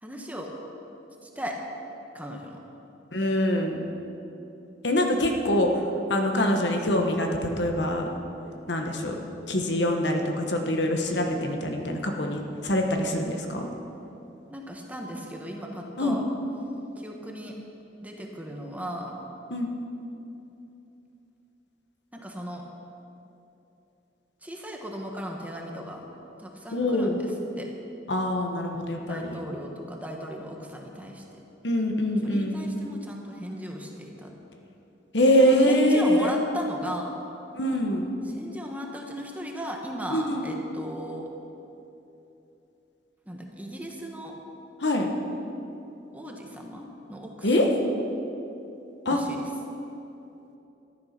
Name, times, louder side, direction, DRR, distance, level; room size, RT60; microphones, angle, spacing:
voice 1, 0.0-0.5 1.2-1.6 2.1-2.6 14.5-16.2 17.0-17.6 18.0-19.2 22.1-22.6 24.4-26.1 26.4-27.7 29.1-31.4 32.2-34.3 35.4-37.2 38.2-41.3 43.3-44.4 46.1-47.7 49.1-49.4, equal, 10° right, 1 dB, 1.3 m, -37 dB
voice 2, 3.1-3.9 4.8-5.7 6.1-8.1 8.7-9.1 9.5-13.7 16.0-16.2 19.5-19.7 26.7-27.2 28.1-29.4 31.6-32.7 35.1-36.3 37.6-38.1 40.1-40.4 44.8-45.1 47.4-47.7 49.0-49.2, left 1 dB, 70° left, 3 dB, 1.4 m, -24 dB
13.5 x 11.0 x 6.0 m, 2.9 s
head